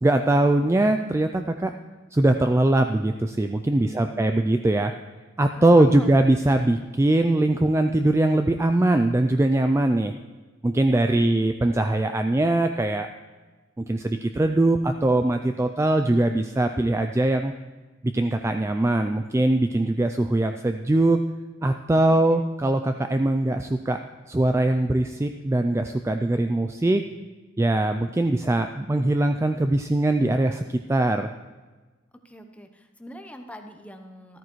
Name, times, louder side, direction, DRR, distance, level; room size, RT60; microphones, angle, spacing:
voice 1, 0.0-1.7 2.1-4.9 5.4-10.1 10.6-13.1 13.8-17.5 18.0-21.2 21.6-24.0 24.3-27.0 27.6-30.6 30.9-31.3, right 1 dB, 15° right, 6 dB, 0.3 m, -21 dB
voice 2, 3.8-4.4 5.6-6.1 11.1-11.4 22.1-22.5 32.2-34.4, equal, 5° left, 5 dB, 0.8 m, -43 dB
13.5 x 13.5 x 3.1 m, 1.3 s
head